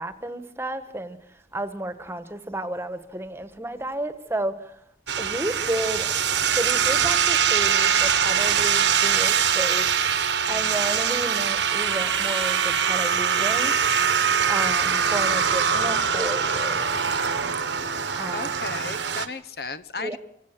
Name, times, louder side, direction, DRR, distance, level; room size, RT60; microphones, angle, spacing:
voice 1, 0.0-4.8 5.2-6.1 6.5-9.9 10.5-13.7 14.5-16.9 18.1-18.6 20.0-20.2, right 1 dB, 15° right, 1.4 m, -32 dB
sound 1, 5.1-19.3, right 7 dB, 80° right, 1.4 m, -23 dB
voice 2, 10.5-10.8 18.3-20.2, left 4 dB, 60° left, 1.1 m, -35 dB
27.0 x 16.0 x 7.6 m
head